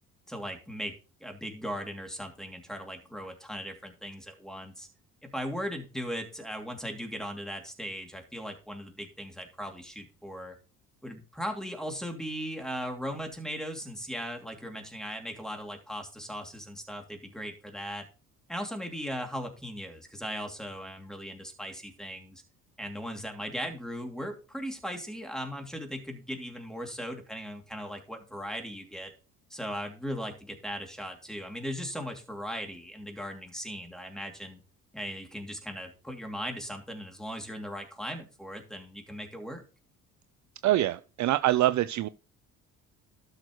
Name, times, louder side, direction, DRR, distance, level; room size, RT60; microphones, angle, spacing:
voice 1, 0.3-0.9 1.2-4.9 5.2-10.5 11.0-18.1 18.5-22.4 22.8-29.1 29.5-34.6 34.9-39.6, equal, ahead, 2.8 m, -38 dB
voice 2, 40.6-42.1, right 14 dB, 45° right, 0.5 m, -25 dB
12.5 x 6.4 x 3.1 m
hypercardioid pair, 60°, 40 cm